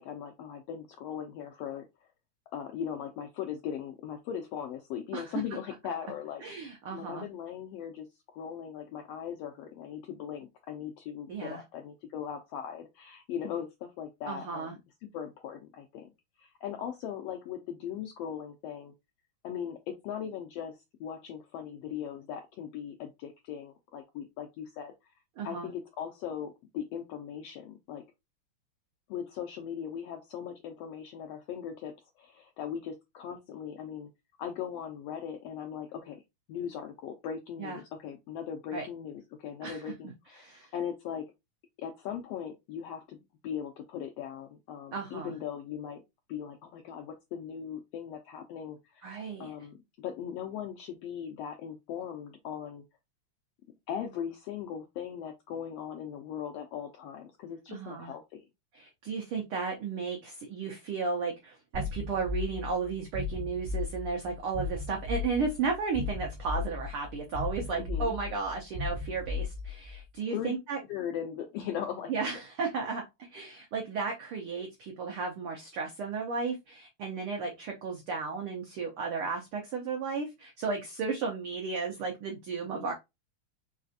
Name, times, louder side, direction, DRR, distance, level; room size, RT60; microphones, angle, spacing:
voice 1, 0.0-1.8 2.5-14.8 15.1-16.1 16.4-18.9 19.4-25.1 25.4-28.0 29.1-31.9 32.2-34.1 34.4-36.2 36.5-41.2 41.8-43.2 43.4-46.0 46.3-52.8 53.9-58.4 67.8-68.2 70.3-70.5 70.9-72.1 82.6-82.9, left 8 dB, 85° left, 4 dB, 1.4 m, -39 dB
voice 2, 6.4-7.3 11.3-11.6 14.3-14.7 25.4-25.7 37.6-37.8 38.7-38.8 39.6-39.9 40.4-40.7 44.9-45.3 49.0-49.5 57.7-58.1 58.7-70.8 72.1-73.0 73.3-82.9, right 4 dB, 85° right, 2 dB, 1.2 m, -34 dB
sound 1, 61.7-70.0, left 4 dB, 65° right, 0.9 m, -36 dB
4.7 x 3.3 x 2.6 m, 0.21 s
omnidirectional pair, 3.4 m